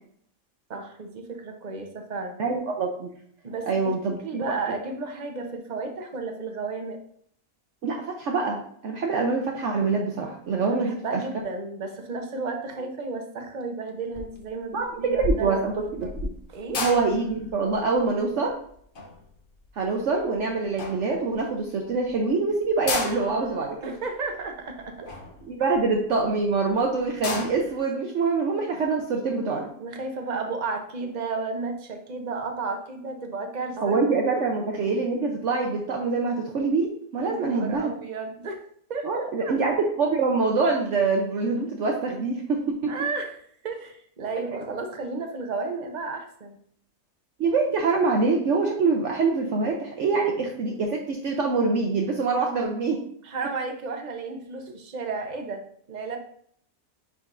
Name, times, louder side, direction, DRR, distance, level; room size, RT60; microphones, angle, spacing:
voice 1, 0.7-2.4 3.4-3.9 4.2-7.0 10.6-16.1 16.5-16.8 23.8-25.1 29.8-34.0 37.2-38.6 38.9-39.6 42.9-43.4 43.6-46.6 53.2-56.2, right 4 dB, 35° right, 5 dB, 0.8 m, -33 dB
voice 2, 2.4-3.1 3.7-4.4 7.8-11.2 14.7-16.3 16.8-18.5 19.8-23.9 25.4-29.7 33.8-37.9 39.0-42.9 47.4-53.0, right 4 dB, 60° right, 1 dB, 1.0 m, -25 dB
sound 1, 14.1-14.5 14.7-20.3 20.8-21.5 22.0-22.1 22.2-22.3 22.7-26.3 26.7-26.8 27.0-27.8, left 2 dB, 45° left, 0.9 m, -33 dB
9.7 x 4.1 x 2.6 m, 0.64 s
omnidirectional pair, 1.5 m